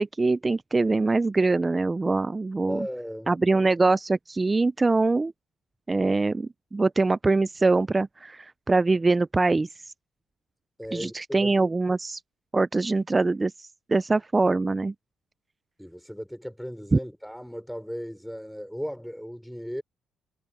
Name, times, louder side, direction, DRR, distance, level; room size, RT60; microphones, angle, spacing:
voice 1, 0.0-2.9 3.3-5.3 5.9-9.7 10.9-12.2 12.5-14.9 16.9-17.0, right 3 dB, 20° right, 0.4 m, -23 dB
voice 2, 2.7-3.4 10.8-11.6 15.8-19.8, equal, ahead, 5.8 m, -36 dB
cardioid pair, 90°, 0 cm